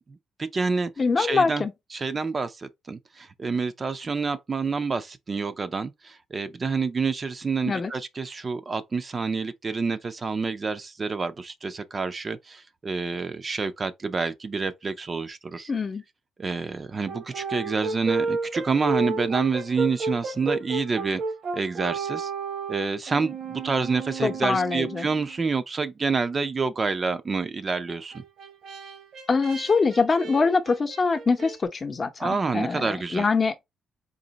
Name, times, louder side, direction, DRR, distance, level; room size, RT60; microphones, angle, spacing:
voice 1, 0.1-0.9 1.2-1.6 1.9-15.7 16.4-21.2 21.5-22.3 22.7-28.2 32.2-33.3, right 4 dB, 35° right, 0.5 m, -28 dB
voice 2, 1.0-1.7 7.7-7.9 15.7-16.0 24.2-25.1 29.3-33.5, left 4 dB, 35° left, 0.8 m, -24 dB
Brass instrument, 17.1-25.4 27.9-31.6, right 4 dB, 60° right, 0.9 m, -32 dB
3.9 x 2.7 x 4.0 m
cardioid pair, 90°, 0 cm